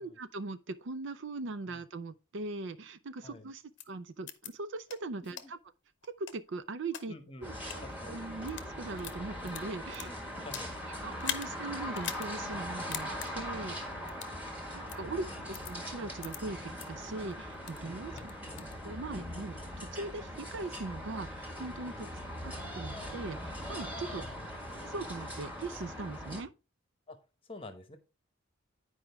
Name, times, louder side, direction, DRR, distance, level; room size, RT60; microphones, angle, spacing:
voice 1, 0.0-5.6 6.0-10.1 11.0-13.8 14.7-24.3 24.7-26.5, right 3 dB, 55° right, 0.5 m, -40 dB
sound 1, 3.8-3.9 4.3-4.5 4.9-5.0 5.4-5.5 6.0-7.0 7.6-7.8 8.3-8.7 9.0-10.7 11.2-11.5 11.9-12.3 12.6-12.7 12.9-13.3 14.1-14.4 14.9-15.0 15.5-15.7 16.2-16.4 16.8-16.9 17.3-17.8 18.2-18.7, left 10 dB, 55° left, 0.7 m, -40 dB
voice 2, 7.1-7.5 7.8-8.2 10.0-10.7 14.3-14.4 15.1-15.2 17.9-18.3 22.0-22.1 24.0-24.3 27.1-27.2 27.5-28.0, left 2 dB, 25° left, 0.9 m, -49 dB
sound 2, 7.4-26.4, equal, 5° right, 1.6 m, -41 dB
10.0 x 4.9 x 3.4 m
head